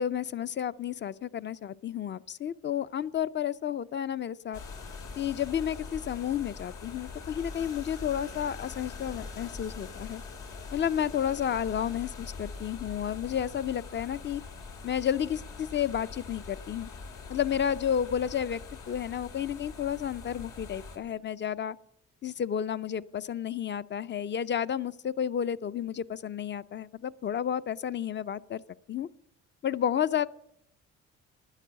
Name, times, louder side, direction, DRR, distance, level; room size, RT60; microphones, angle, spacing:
voice 1, 0.0-4.6 5.2-10.2 10.7-14.4 14.8-16.9 17.3-21.8 22.2-28.6 28.9-29.1 29.6-30.3, left 9 dB, 40° left, 17 dB, 0.5 m, -31 dB
sound 1, 4.5-21.0, left 4 dB, 85° left, 2.7 m, -43 dB
11.5 x 10.0 x 7.4 m, 0.78 s
cardioid pair, 90°, 30 cm